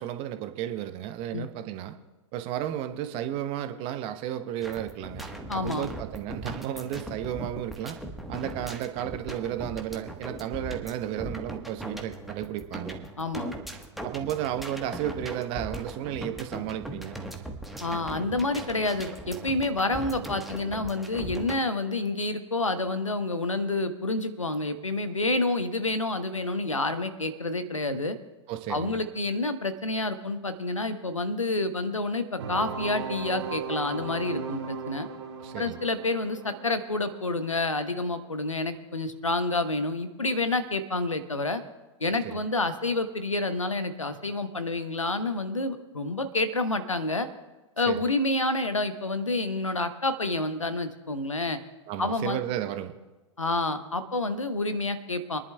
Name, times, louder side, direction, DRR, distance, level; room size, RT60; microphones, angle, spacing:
voice 1, 0.0-1.9 2.3-5.3 5.5-8.0 8.3-13.0 14.0-17.2 28.5-29.0 35.4-35.8 42.3-42.4 47.9-48.1 51.9-53.0, right 11 dB, 35° right, 9 dB, 0.9 m, -33 dB
sound 1, 4.6-21.6, right 1 dB, ahead, 1.2 m, -39 dB
voice 2, 5.5-5.9 13.2-13.5 17.8-28.2 28.7-35.1 35.6-41.6 42.0-47.3 47.8-51.6 52.0-52.4 53.4-55.4, left 2 dB, 85° left, 11 dB, 1.0 m, -28 dB
sound 2, 32.4-38.0, right 5 dB, 60° right, 1.7 m, -37 dB
28.0 x 11.0 x 2.3 m, 1.1 s
figure-of-eight pair, 95°, 16 cm